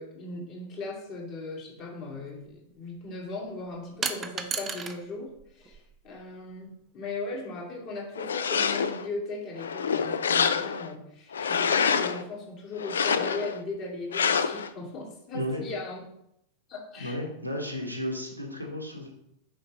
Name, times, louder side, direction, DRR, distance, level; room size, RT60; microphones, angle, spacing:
voice 1, 0.0-5.3 5.5-5.8 6.0-16.0 16.7-17.2, left 3 dB, 40° left, -1 dB, 2.0 m, -38 dB
sound 1, 2.1-2.2 4.0-5.0 5.3-6.2, right 6 dB, 20° right, 0.6 m, -34 dB
sound 2, 8.1-9.1 9.6-10.9 11.3-12.2 12.8-13.6 14.1-14.7, left 6 dB, 70° left, 0.4 m, -26 dB
voice 2, 17.0-19.1, left 1 dB, 90° right, 1 dB, 1.3 m, -33 dB
6.5 x 4.8 x 4.0 m, 0.78 s
figure-of-eight pair, 90°, 0 cm